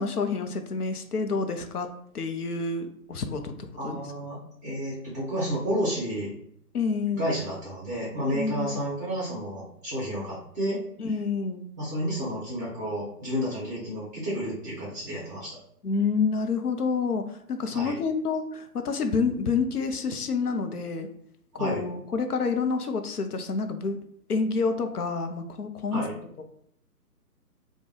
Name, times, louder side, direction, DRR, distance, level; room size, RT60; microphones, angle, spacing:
voice 1, 0.0-1.9 2.1-3.5 3.8-4.0 6.7-7.3 8.3-8.7 11.0-11.6 15.8-21.1 21.5-24.0 24.3-26.0, left 4 dB, 70° left, 7 dB, 0.5 m, -28 dB
voice 2, 3.8-6.3 7.1-10.8 11.8-15.6 17.7-18.0 21.5-21.8 25.9-26.1, equal, 10° right, -7 dB, 0.7 m, -31 dB
3.3 x 2.2 x 3.1 m, 0.69 s
figure-of-eight pair, 140°, 48 cm